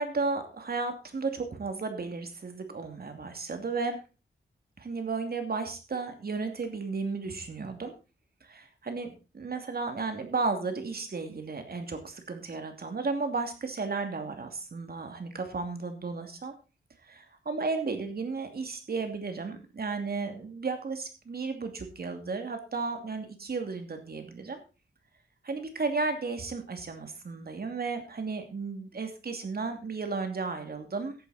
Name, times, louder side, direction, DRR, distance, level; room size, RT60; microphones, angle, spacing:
voice 1, 0.0-4.0 4.8-7.9 8.4-16.5 17.0-24.6 25.4-31.1, right 4 dB, 55° right, 6 dB, 2.7 m, -34 dB
14.5 x 8.7 x 4.2 m, 0.32 s
wide cardioid pair, 90°, 19 cm